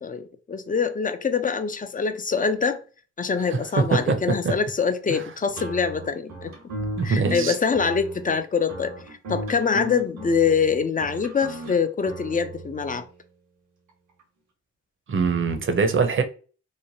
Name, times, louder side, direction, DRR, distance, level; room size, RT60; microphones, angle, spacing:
voice 1, 0.0-2.8 3.2-6.5 7.0-8.9 9.3-13.0, left 5 dB, 30° left, 0.5 m, -24 dB
voice 2, 3.5-4.5 5.1-5.2 7.0-7.6 15.1-16.2, right 4 dB, 45° right, 0.7 m, -23 dB
sound 1, 5.6-13.0, right 2 dB, 85° right, 1.2 m, -36 dB
3.1 x 2.1 x 2.7 m
supercardioid pair, 50°, 30 cm